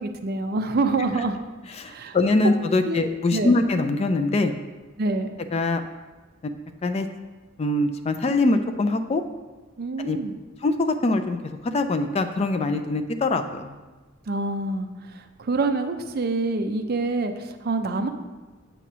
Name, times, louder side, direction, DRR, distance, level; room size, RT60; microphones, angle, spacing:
voice 1, 0.0-1.4 1.8-2.2 2.8-3.0 3.3-3.5 5.0-5.3 9.8-10.3 14.3-18.1, right 3 dB, 50° right, 7 dB, 0.5 m, -26 dB
voice 2, 1.8-4.5 5.5-5.8 6.4-6.5 6.8-7.1 7.6-9.2 10.0-10.2 10.6-11.4 11.6-13.8, left 2 dB, 30° left, 8 dB, 0.3 m, -23 dB
7.9 x 3.0 x 6.0 m, 1.2 s
head